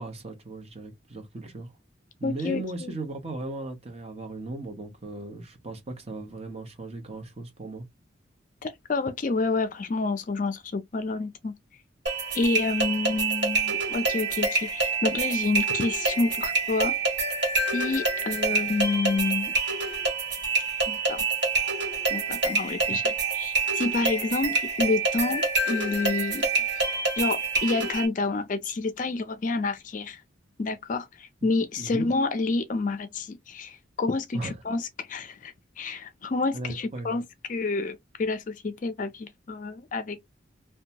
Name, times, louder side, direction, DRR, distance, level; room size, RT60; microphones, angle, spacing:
voice 1, 0.0-1.7 2.2-7.8 31.4-31.5 31.8-32.1 34.3-34.5 36.5-37.2, right 2 dB, 30° right, 0.8 m, -37 dB
voice 2, 2.2-2.9 8.6-11.5 12.3-17.2 17.7-19.5 20.9-21.2 22.1-26.5 27.2-30.2 30.6-37.2 37.5-40.2, left 3 dB, 40° left, 0.4 m, -29 dB
sound 1, 12.1-28.1, right 3 dB, 60° right, 1.4 m, -27 dB
2.7 x 2.2 x 2.7 m
head